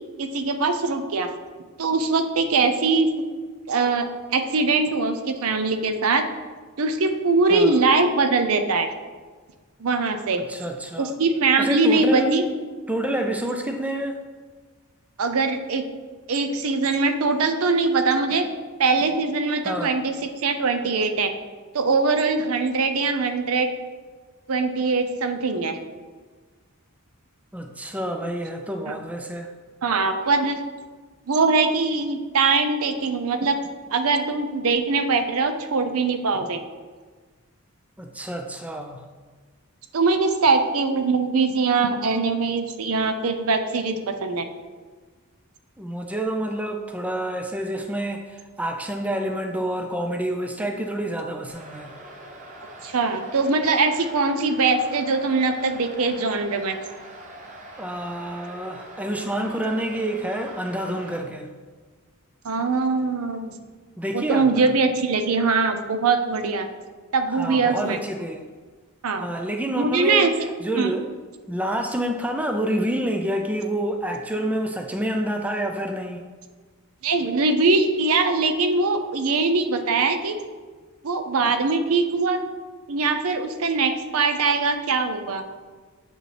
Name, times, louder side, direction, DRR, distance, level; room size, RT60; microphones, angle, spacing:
voice 1, 0.2-1.3 1.8-3.2 3.7-4.1 4.3-6.2 6.8-8.9 9.8-10.4 11.0-12.4 15.2-15.8 16.3-18.4 18.8-20.1 20.4-21.3 21.7-23.7 24.5-25.8 28.9-29.0 29.8-30.6 31.3-33.6 33.9-36.6 39.9-44.5 52.8-56.8 62.4-63.5 64.1-66.7 67.1-68.0 69.0-69.3 69.8-70.3 70.8-71.0 77.0-80.4 81.0-82.4 82.9-85.4, right 3 dB, 75° right, 7 dB, 0.6 m, -22 dB
voice 2, 7.5-7.8 10.4-11.2 11.6-12.5 12.9-14.2 19.6-20.0 27.5-29.5 38.0-39.0 45.8-52.0 57.8-61.5 64.0-64.7 67.3-68.5 69.2-71.1 71.5-76.2, right 1 dB, 5° right, 3 dB, 0.4 m, -28 dB
sound 1, 51.5-61.2, right 1 dB, 35° right, 0.9 m, -43 dB
7.7 x 5.0 x 3.3 m, 1.4 s
head